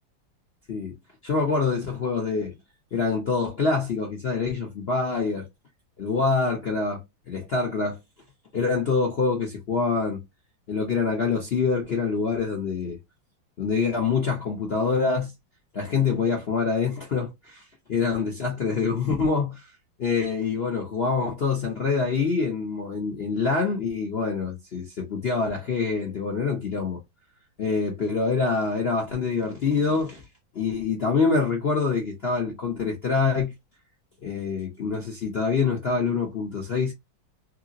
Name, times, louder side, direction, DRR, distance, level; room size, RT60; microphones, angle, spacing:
voice 1, 1.2-2.6 2.9-5.5 6.0-8.0 8.5-10.2 10.7-13.0 13.6-15.3 15.7-19.7 20.0-27.0 27.6-30.2 30.5-33.5 34.2-36.9, left 4 dB, 60° left, 0.6 m, -25 dB
3.2 x 2.9 x 2.6 m
omnidirectional pair, 2.1 m